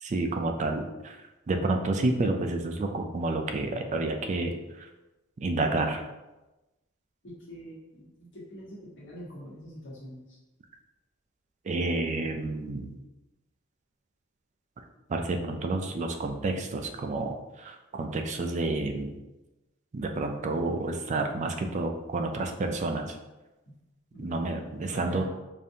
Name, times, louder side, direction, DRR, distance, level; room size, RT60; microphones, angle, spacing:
voice 1, 0.0-4.9 5.4-6.1 11.6-13.0 15.1-19.2 19.9-23.2 24.2-25.2, right 2 dB, 35° right, 5 dB, 0.3 m, -30 dB
voice 2, 7.2-10.4 24.1-25.3, equal, 65° left, -6 dB, 1.4 m, -45 dB
5.1 x 2.5 x 2.7 m, 1.0 s
head